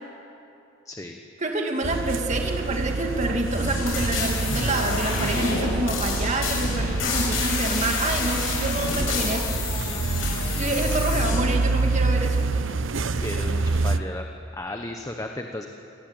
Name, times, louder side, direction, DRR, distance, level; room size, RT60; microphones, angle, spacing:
voice 1, 0.9-1.2 13.2-14.3 14.5-15.7, left 1 dB, 15° left, 4 dB, 1.1 m, -34 dB
voice 2, 1.4-9.5 10.5-12.4, right 2 dB, 35° right, 3 dB, 2.4 m, -27 dB
sound 1, 1.8-14.0, right 3 dB, 75° right, 0.8 m, -27 dB
sound 2, 3.4-11.4, left 3 dB, 85° left, 7.8 m, -29 dB
26.0 x 18.5 x 9.1 m, 2.7 s
head